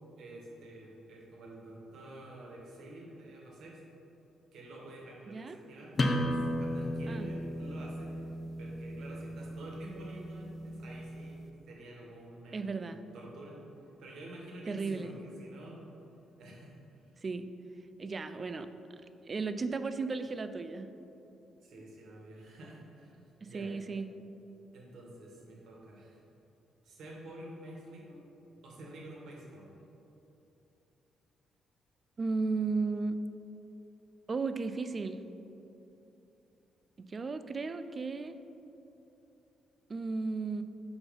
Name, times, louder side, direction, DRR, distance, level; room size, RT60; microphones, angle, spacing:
voice 1, 0.2-3.8 4.5-8.3 8.6-12.8 13.1-13.6 14.0-15.9 16.4-17.1 21.4-23.7 24.7-26.2 26.8-28.2 28.5-29.8, right 1 dB, 75° right, -2 dB, 1.4 m, -49 dB
sound 1, 6.0-11.4, left 1 dB, 35° left, 0.6 m, -35 dB
voice 2, 12.5-13.0 14.7-15.1 17.2-17.5 18.0-18.7 19.3-20.9 23.4-24.1 32.2-33.2 34.3-35.2 37.1-38.4 39.9-40.6, right 4 dB, 35° right, 10 dB, 0.3 m, -34 dB
5.3 x 4.6 x 5.4 m, 3.0 s
cardioid pair, 90°, 0 cm